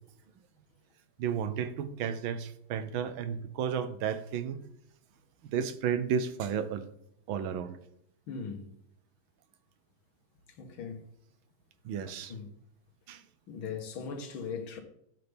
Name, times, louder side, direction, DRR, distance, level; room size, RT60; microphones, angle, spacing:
voice 1, 1.2-4.7 5.4-6.9 7.3-7.8 11.8-12.4 13.1-13.2, right 7 dB, 75° right, 1.5 m, -33 dB
voice 2, 8.3-8.7 10.6-11.0 12.3-12.5 13.5-14.8, left 5 dB, 75° left, 2.1 m, -39 dB
12.0 x 8.5 x 3.5 m
omnidirectional pair, 2.3 m